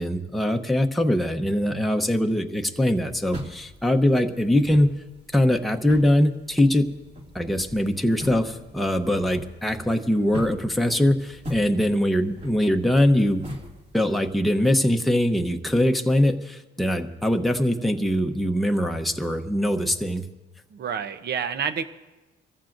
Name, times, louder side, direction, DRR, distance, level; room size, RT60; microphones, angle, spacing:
voice 1, 0.0-4.9 5.3-6.9 7.3-13.5 13.9-20.2, left 1 dB, ahead, 3 dB, 0.9 m, -22 dB
sound 1, 2.9-14.3, equal, 35° right, 2.5 m, -40 dB
voice 2, 20.7-21.8, right 7 dB, 55° right, 11 dB, 0.8 m, -28 dB
25.0 x 14.5 x 2.6 m, 1.1 s
cardioid pair, 90°, 20 cm